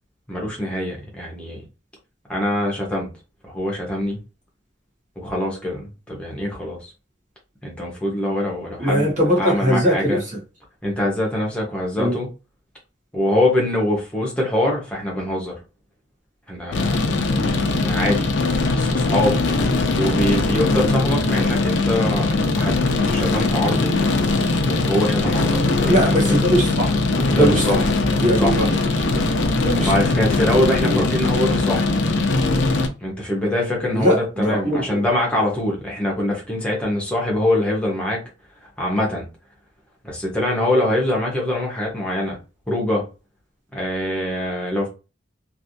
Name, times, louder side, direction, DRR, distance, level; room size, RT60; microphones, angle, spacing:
voice 1, 0.3-1.6 2.3-3.1 3.4-4.2 5.2-6.9 7.6-9.1 9.4-10.2 10.8-12.3 13.1-15.5 16.5-17.2 17.8-18.3 18.6-19.4 19.9-23.9 24.6-26.4 27.3-27.8 28.4-28.5 29.8-31.9 33.0-38.2 38.6-39.3 40.0-42.4 42.7-43.0 43.7-44.9, left 1 dB, 5° left, -3 dB, 1.1 m, -23 dB
voice 2, 8.8-10.2 12.0-12.1 25.8-27.0 27.3-27.9 28.2-28.7 29.1-29.9 30.5-31.0 33.9-35.0, equal, 40° right, -2 dB, 1.3 m, -21 dB
sound 1, 16.7-32.9, left 3 dB, 75° left, 0.6 m, -20 dB
3.3 x 2.7 x 2.6 m, 0.30 s
head